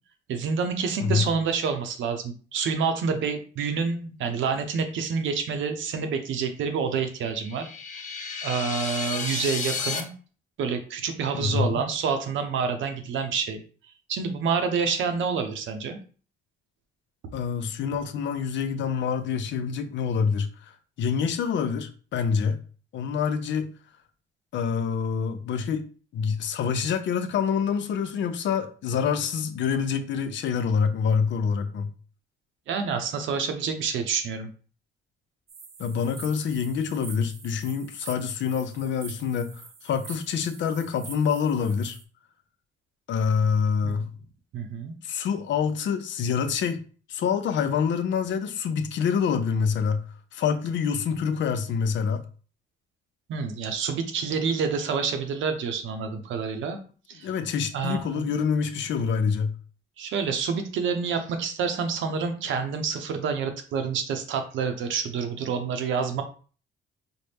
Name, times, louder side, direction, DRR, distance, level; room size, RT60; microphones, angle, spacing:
voice 1, 0.3-7.7 8.4-10.1 10.6-13.6 14.1-16.0 32.7-34.5 43.8-44.0 44.5-44.9 53.3-56.8 57.1-57.3 57.7-58.3 60.0-66.2, right 5 dB, 75° right, 0.7 m, -28 dB
sound 1, 7.2-10.0, left 5 dB, 40° left, 0.8 m, -32 dB
voice 2, 11.3-11.8 17.3-22.6 22.9-23.7 24.5-25.9 26.1-31.9 35.8-42.0 43.1-44.1 45.0-46.8 47.1-52.2 57.2-59.6, left 6 dB, 65° left, 0.5 m, -26 dB
sound 2, 35.5-42.0, right 5 dB, 35° right, 0.5 m, -45 dB
4.2 x 2.1 x 3.4 m
cardioid pair, 90°, 20 cm